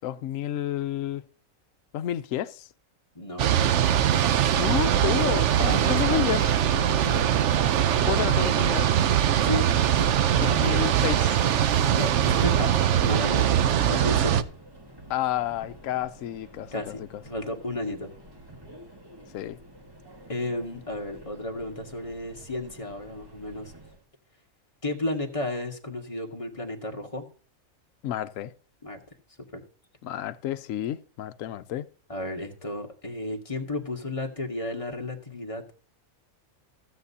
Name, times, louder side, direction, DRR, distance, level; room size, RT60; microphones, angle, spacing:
voice 1, 0.0-1.2 1.9-2.7 4.6-6.5 8.1-8.9 10.3-11.4 15.1-17.1 19.3-19.6 28.0-28.5 30.0-31.9, left 12 dB, 75° left, 1.0 m, -30 dB
voice 2, 3.1-3.7 5.6-6.3 6.7-7.5 9.4-9.7 10.0-10.1 11.9-12.7 13.0-14.5 16.7-18.1 20.3-23.7 24.8-27.2 28.8-29.0 29.5-29.6 32.1-35.6, left 1 dB, 25° left, 1.6 m, -33 dB
sound 1, 3.4-14.4, right 10 dB, 65° right, 0.9 m, -22 dB
Subway metro underground, 9.2-24.1, right 1 dB, 15° right, 1.5 m, -49 dB
15.5 x 8.0 x 2.8 m
omnidirectional pair, 1.5 m